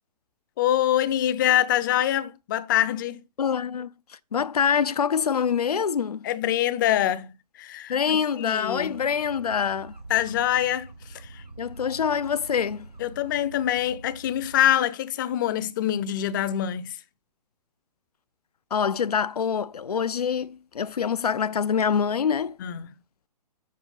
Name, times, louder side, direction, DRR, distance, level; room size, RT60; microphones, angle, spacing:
voice 1, 0.6-3.2 6.2-7.3 7.6-8.9 10.1-10.9 11.3-11.4 13.0-17.0 22.6-22.9, left 12 dB, 30° left, 0.6 m, -24 dB
voice 2, 3.4-6.3 7.9-9.9 11.6-12.9 18.7-22.6, left 7 dB, 70° left, 0.5 m, -25 dB
sound 1, 8.7-14.8, right 2 dB, 85° right, 1.6 m, -45 dB
7.5 x 4.4 x 5.6 m
figure-of-eight pair, 125°, 21 cm